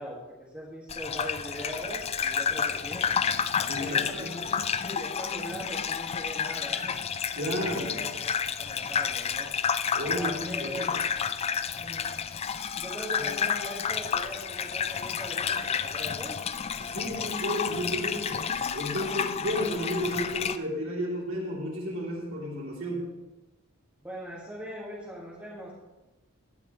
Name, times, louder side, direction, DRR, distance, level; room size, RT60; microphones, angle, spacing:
voice 1, 0.0-3.1 3.8-8.3 8.6-9.5 10.0-10.9 11.7-12.2 12.8-16.4 24.0-25.7, equal, 10° right, -7 dB, 1.8 m, -40 dB
Gurgling / Bathtub (filling or washing), 0.9-20.6, left 7 dB, 30° left, 0.3 m, -30 dB
voice 2, 3.6-4.3 7.3-8.0 9.9-10.9 13.2-13.3 16.8-18.4 18.7-23.1, equal, 65° right, -5 dB, 3.2 m, -32 dB
16.5 x 10.5 x 3.1 m, 1.1 s
head